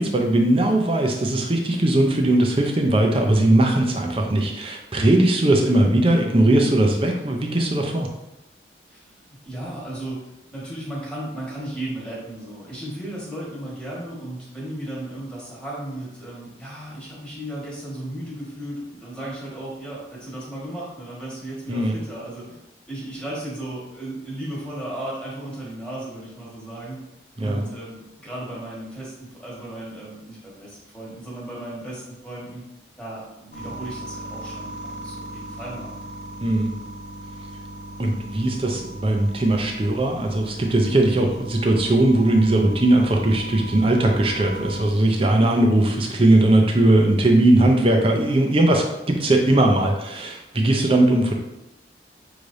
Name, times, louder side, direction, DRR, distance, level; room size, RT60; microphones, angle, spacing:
voice 1, 0.0-8.1 21.7-21.9 27.4-27.7 36.4-36.7 38.0-51.3, right 1 dB, 30° right, 2 dB, 0.6 m, -19 dB
voice 2, 8.9-22.6 22.9-27.0 27.4-32.6 33.0-35.9, right 1 dB, 5° left, -7 dB, 1.5 m, -35 dB
sound 1, 33.5-44.9, right 1 dB, 70° left, 1.0 m, -38 dB
5.9 x 3.3 x 2.6 m, 0.92 s
head